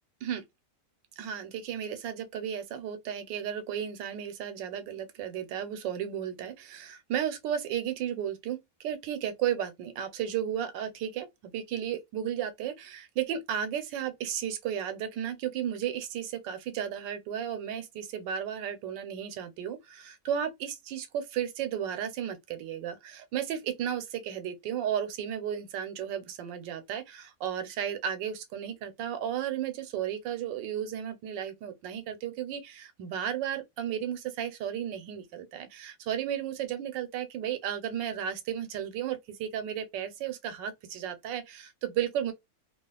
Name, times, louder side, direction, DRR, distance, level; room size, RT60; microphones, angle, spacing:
voice 1, 1.2-42.3, right 9 dB, 85° right, 1.4 m, -34 dB
3.0 x 2.4 x 2.2 m
omnidirectional pair, 1.9 m